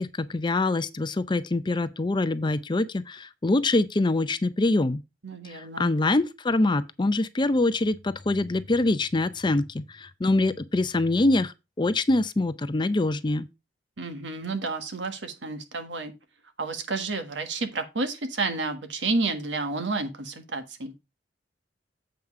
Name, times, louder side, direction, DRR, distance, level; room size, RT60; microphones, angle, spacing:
voice 1, 0.0-5.0 5.5-13.5, left 2 dB, 25° left, 0.5 m, -24 dB
voice 2, 5.2-5.9 14.0-16.1 16.6-20.9, right 3 dB, 80° right, 1.5 m, -30 dB
7.9 x 5.2 x 4.7 m
head